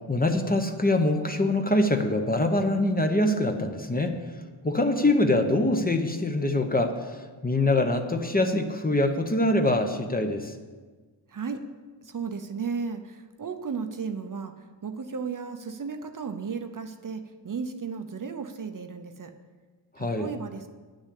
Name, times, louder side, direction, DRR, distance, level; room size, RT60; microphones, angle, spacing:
voice 1, 0.1-4.2 4.6-10.5 20.0-20.3, left 1 dB, 20° left, 5 dB, 0.8 m, -24 dB
voice 2, 11.3-11.6 12.0-14.5 14.8-19.3 20.0-20.7, right 5 dB, 45° right, 6 dB, 0.7 m, -34 dB
9.7 x 6.4 x 8.3 m, 1.4 s
wide cardioid pair, 125°, 46 cm